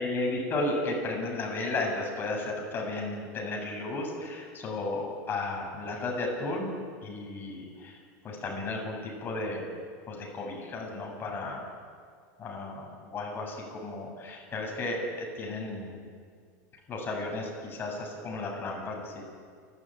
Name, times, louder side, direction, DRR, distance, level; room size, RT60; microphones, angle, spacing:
voice 1, 0.0-6.7 7.0-8.0 8.2-9.6 10.1-11.7 12.4-16.0 16.9-19.2, left 2 dB, 20° left, -1 dB, 7.6 m, -34 dB
30.0 x 13.0 x 9.3 m, 2.1 s
supercardioid pair, 150°, 9 cm